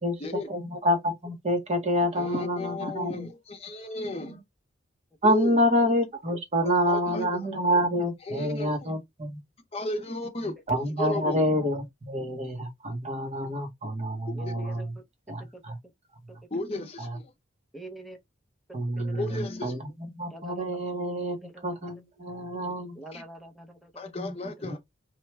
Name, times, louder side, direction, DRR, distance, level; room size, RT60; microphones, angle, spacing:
voice 1, 0.0-3.3 5.2-9.4 10.7-14.8 15.3-15.8 17.0-17.2 18.7-21.4 21.6-23.0 24.6-24.8, equal, 35° right, 0.8 m, -27 dB
voice 2, 2.1-4.4 5.2-5.6 6.9-7.4 8.3-9.0 9.7-10.5 11.0-11.7 16.5-17.3 19.2-19.8 23.1-23.2 24.0-24.8, left 2 dB, 30° left, 0.8 m, -34 dB
voice 3, 11.0-11.3 13.4-13.5 14.3-14.9 15.3-15.6 16.3-16.4 17.7-18.2 18.7-19.5 20.3-20.8 21.4-21.9 22.9-24.0, right 2 dB, ahead, 0.6 m, -46 dB
3.1 x 2.3 x 3.2 m
head